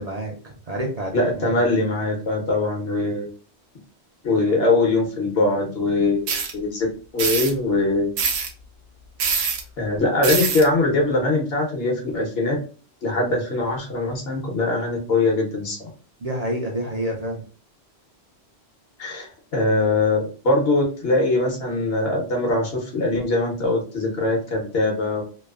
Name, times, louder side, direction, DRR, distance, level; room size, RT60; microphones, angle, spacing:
voice 1, 0.0-1.7 16.2-17.4, right 1 dB, 45° right, -1 dB, 0.6 m, -29 dB
voice 2, 1.1-3.3 4.2-6.9 7.1-8.1 9.8-12.6 13.0-15.8 19.0-25.2, left 2 dB, 70° left, 0 dB, 1.1 m, -22 dB
sound 1, 6.3-6.5 7.2-7.5 8.2-8.5 9.2-9.6 10.2-10.6, right 5 dB, 75° right, 0.8 m, -23 dB
3.0 x 2.0 x 2.3 m, 0.38 s
omnidirectional pair, 1.1 m